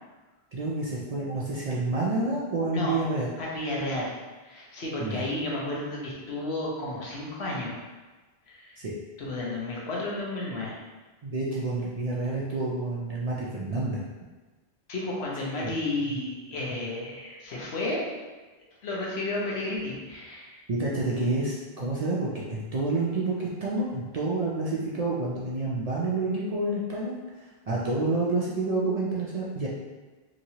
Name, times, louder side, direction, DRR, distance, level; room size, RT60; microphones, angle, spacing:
voice 1, 0.5-3.3 5.0-5.2 8.8-8.9 11.2-14.0 20.7-27.2 27.7-29.7, right 2 dB, 55° right, -6 dB, 0.4 m, -28 dB
voice 2, 3.4-4.1 4.4-7.7 8.5-8.8 9.2-10.8 14.9-18.0 18.8-20.6, left 2 dB, 85° left, -4 dB, 1.0 m, -32 dB
3.0 x 2.8 x 2.7 m, 1.3 s
omnidirectional pair, 1.1 m